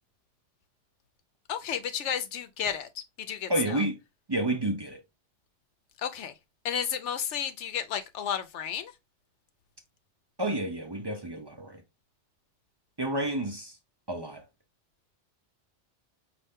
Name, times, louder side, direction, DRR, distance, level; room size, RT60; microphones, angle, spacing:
voice 1, 1.5-2.9 3.2-3.8 6.0-6.3 6.6-8.9, left 8 dB, 80° left, 0.9 m, -32 dB
voice 2, 3.5-4.0 4.3-5.0 10.4-11.8 13.0-13.7 14.1-14.4, right 1 dB, 30° right, 0.5 m, -30 dB
5.3 x 2.6 x 3.5 m
omnidirectional pair, 1.2 m